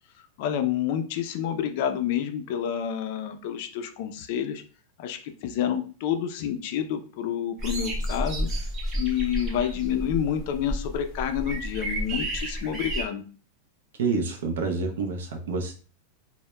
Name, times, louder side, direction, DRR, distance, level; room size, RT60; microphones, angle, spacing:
voice 1, 0.4-4.6 5.0-8.5 8.9-13.2, left 9 dB, 55° left, 8 dB, 0.3 m, -29 dB
sound 1, 7.6-13.0, equal, 20° right, 0.5 m, -31 dB
voice 2, 14.0-15.7, right 4 dB, 85° right, 3 dB, 0.4 m, -28 dB
2.1 x 2.0 x 3.0 m, 0.39 s
supercardioid pair, 150°, 0 cm